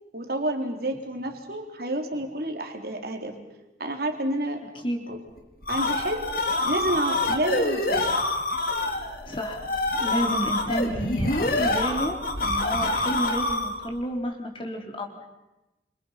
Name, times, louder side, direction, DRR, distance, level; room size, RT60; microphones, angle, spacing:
voice 1, 0.1-3.4 3.8-4.6 5.1-5.2 5.7-6.3 6.6-8.1, right 1 dB, 55° right, 4 dB, 3.8 m, -29 dB
voice 2, 4.8-5.2 9.3-9.7 10.0-15.2, equal, 30° left, 2 dB, 4.1 m, -30 dB
sound 1, 5.4-13.9, left 2 dB, 55° left, 3.8 m, -26 dB
28.0 x 27.5 x 5.9 m, 1.0 s
head